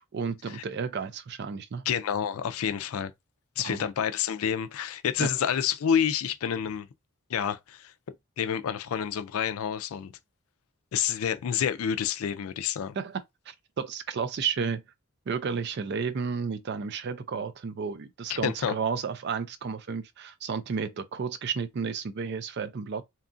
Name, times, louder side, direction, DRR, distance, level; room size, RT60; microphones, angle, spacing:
voice 1, 0.0-1.8 3.6-3.8 5.2-5.3 13.0-14.8 15.3-23.0, right 5 dB, 50° right, 0.4 m, -32 dB
voice 2, 1.9-3.1 3.6-6.9 7.3-7.9 8.4-10.1 10.9-13.0 18.3-18.7, left 8 dB, 75° left, 0.4 m, -28 dB
2.8 x 2.4 x 2.5 m
head